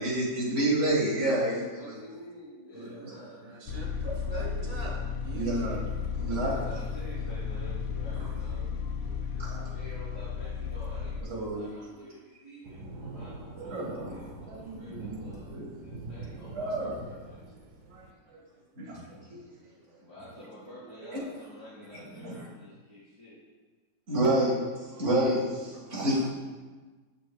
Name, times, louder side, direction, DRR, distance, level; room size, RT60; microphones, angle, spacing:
voice 1, 0.0-2.0 2.7-3.1 4.0-4.6 5.3-5.8 6.2-6.7 8.1-8.3 9.4-9.5 11.3-11.7 13.5-14.1 14.5-15.2 15.5-15.8 16.5-17.0 17.9-18.0 18.8-19.0 21.1-21.2 21.9-22.5 24.1-24.6 25.0-26.3, right 1 dB, 45° right, -5 dB, 2.0 m, -29 dB
voice 2, 1.8-3.9 6.2-9.4 9.7-12.8 13.0-13.3 13.6-13.8 14.1-15.5 15.8-17.4 20.0-23.4, equal, 50° left, -11 dB, 2.4 m, -49 dB
voice 3, 3.0-5.9 6.2-6.6 9.0-10.0 18.8-19.0 20.7-21.3 25.7-26.3, right 3 dB, 85° right, -1 dB, 1.9 m, -46 dB
sound 1, 3.7-11.2, left 6 dB, 75° left, 0.7 m, -34 dB
sound 2, 12.6-18.1, right 2 dB, 60° right, 1.0 m, -44 dB
8.3 x 6.5 x 2.3 m, 1.3 s
omnidirectional pair, 1.8 m